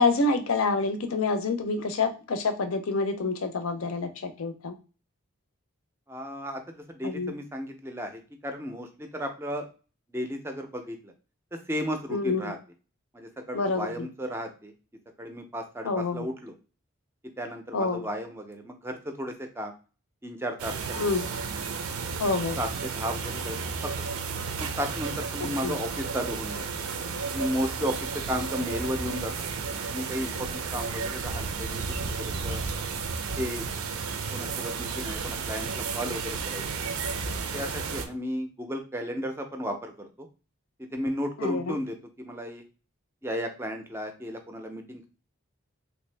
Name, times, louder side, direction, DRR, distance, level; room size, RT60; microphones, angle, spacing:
voice 1, 0.0-4.8 7.0-7.3 12.1-12.5 13.5-13.9 15.8-16.3 17.7-18.1 21.0-21.3 22.2-22.6 25.4-25.8 41.4-41.8, left 3 dB, 75° left, 8 dB, 0.5 m, -27 dB
voice 2, 6.1-9.7 10.1-11.1 11.5-12.6 13.1-14.7 15.2-16.5 17.4-19.7 20.2-21.3 22.6-24.2 24.6-26.7 27.3-29.3 29.9-32.6 33.4-33.7 34.3-36.6 37.5-40.3 40.9-42.6 43.2-45.1, equal, 10° right, 5 dB, 0.4 m, -34 dB
sound 1, 20.6-38.1, right 5 dB, 80° right, 0.5 m, -33 dB
3.2 x 2.6 x 3.2 m, 0.34 s
head